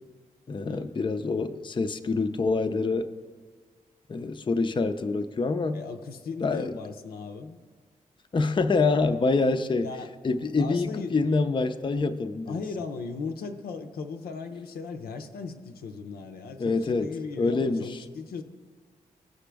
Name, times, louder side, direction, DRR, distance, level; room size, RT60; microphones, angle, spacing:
voice 1, 0.5-3.1 4.1-5.8 6.4-6.8 8.3-9.9 10.2-12.6 16.6-18.0, left 3 dB, 30° left, 8 dB, 0.5 m, -26 dB
voice 2, 5.7-7.6 9.8-10.1 10.6-11.4 12.5-18.4, left 4 dB, 80° left, 6 dB, 0.6 m, -37 dB
15.0 x 5.0 x 3.4 m, 1.5 s
supercardioid pair, 45°, 16 cm